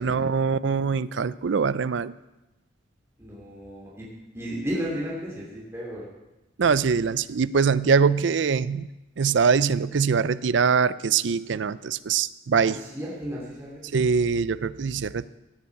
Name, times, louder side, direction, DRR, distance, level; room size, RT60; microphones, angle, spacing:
voice 1, 0.0-2.1 6.6-8.9 9.2-12.8 13.9-15.3, right 5 dB, 60° right, 17 dB, 0.4 m, -23 dB
voice 2, 3.2-4.1 4.3-6.0 12.5-14.0, equal, 15° right, -6 dB, 3.0 m, -34 dB
17.0 x 7.2 x 8.4 m, 1.0 s
head